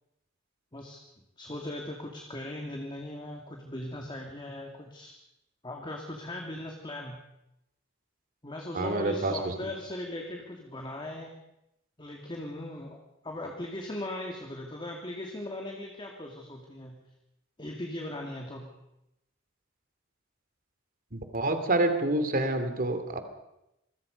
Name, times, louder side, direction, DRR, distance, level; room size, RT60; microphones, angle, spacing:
voice 1, 1.4-5.1 5.6-7.2 8.4-11.3 12.0-17.0 17.6-18.7, left 1 dB, 25° left, 1 dB, 2.4 m, -39 dB
voice 2, 8.7-9.5 21.1-23.2, right 2 dB, 45° right, 8 dB, 2.8 m, -27 dB
26.5 x 21.5 x 5.3 m, 0.86 s
head